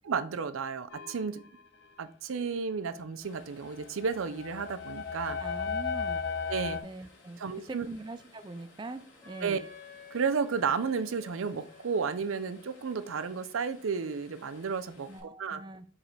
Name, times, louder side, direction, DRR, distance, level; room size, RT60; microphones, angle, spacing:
voice 1, 0.0-1.4 2.0-5.4 6.5-6.8 7.4-7.9 9.4-9.6 10.1-15.6, right 5 dB, 85° right, 13 dB, 0.5 m, -32 dB
sound 1, 0.9-1.5 3.4-6.8, left 5 dB, 55° left, 0.6 m, -35 dB
sound 2, 3.2-15.2, left 2 dB, 75° left, 2.7 m, -58 dB
voice 2, 5.4-6.2 6.8-7.4 7.7-9.6 15.1-15.9, right 2 dB, 20° right, 11 dB, 0.3 m, -42 dB
Wind instrument woodwind instrument, 9.2-14.8, left 7 dB, 10° left, 1.6 m, -54 dB
4.9 x 4.8 x 4.5 m, 0.43 s
head